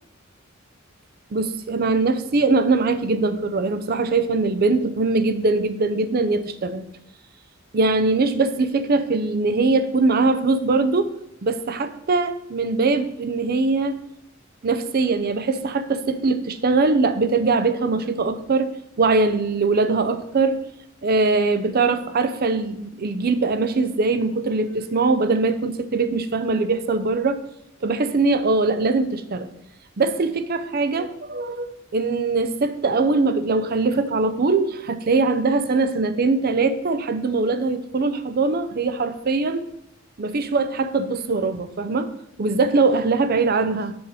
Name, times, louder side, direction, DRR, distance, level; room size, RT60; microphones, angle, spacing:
voice 1, 1.3-6.8 7.7-11.1 11.4-14.0 14.6-20.6 21.0-27.4 27.8-29.5 30.0-39.6 40.2-42.1 42.4-44.0, right 3 dB, 50° right, 12 dB, 0.5 m, -21 dB
7.0 x 5.6 x 4.9 m, 0.78 s
head